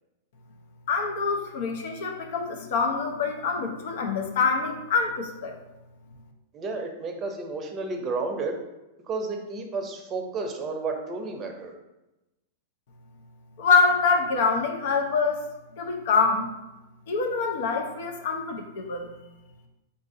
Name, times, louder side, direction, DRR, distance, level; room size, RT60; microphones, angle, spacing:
voice 1, 0.9-5.5 13.6-15.5 15.8-16.5 17.1-19.1, left 4 dB, 70° left, 3 dB, 0.7 m, -25 dB
voice 2, 6.5-8.6 9.1-11.7, right 3 dB, 30° right, 3 dB, 0.6 m, -31 dB
4.0 x 2.5 x 3.7 m, 0.99 s
hypercardioid pair, 125°, 0 cm